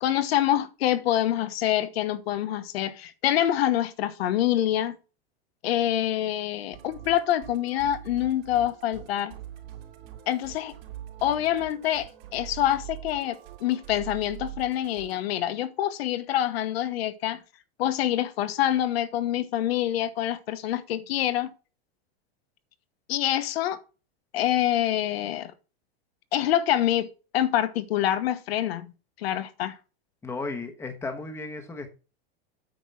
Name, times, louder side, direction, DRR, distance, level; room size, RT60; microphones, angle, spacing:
voice 1, 0.0-5.0 5.6-9.3 10.3-10.7 11.2-17.4 17.8-21.5 23.1-23.8 24.3-25.5 26.3-28.9 29.2-29.8, left 12 dB, 80° left, 1.1 m, -26 dB
Musical instrument, 6.7-15.2, right 12 dB, 80° right, 2.8 m, -43 dB
voice 2, 30.2-31.9, left 3 dB, 10° left, 1.1 m, -34 dB
9.0 x 4.7 x 5.8 m
supercardioid pair, 160°, 30 cm